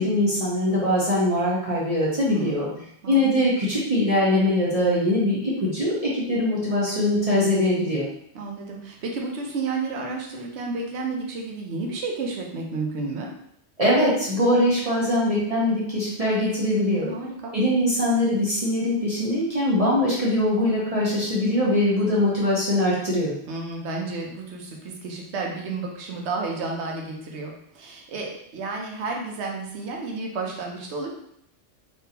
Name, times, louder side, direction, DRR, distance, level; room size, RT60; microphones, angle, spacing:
voice 1, 0.0-2.7 3.1-8.1 13.8-17.1 17.5-23.3, left 1 dB, 35° right, -7 dB, 0.8 m, -22 dB
voice 2, 2.3-2.7 3.0-3.2 8.3-13.3 16.9-17.5 23.5-31.1, right 3 dB, 75° right, 0 dB, 1.0 m, -31 dB
3.6 x 2.7 x 2.8 m, 0.71 s
omnidirectional pair, 1.2 m